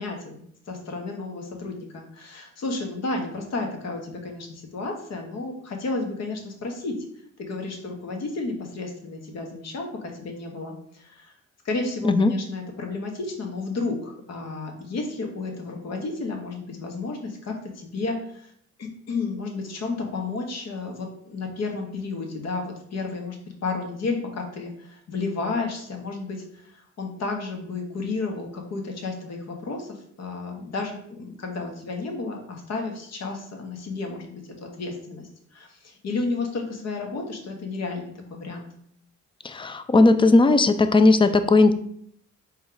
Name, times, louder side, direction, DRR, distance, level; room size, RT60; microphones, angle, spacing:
voice 1, 0.0-6.9 7.4-11.3 11.6-18.5 18.8-38.7 41.2-41.4, left 3 dB, 60° left, 2 dB, 1.2 m, -32 dB
voice 2, 39.4-41.7, left 3 dB, 15° left, 10 dB, 0.4 m, -17 dB
4.5 x 3.1 x 3.8 m, 0.65 s
cardioid pair, 90°, 30 cm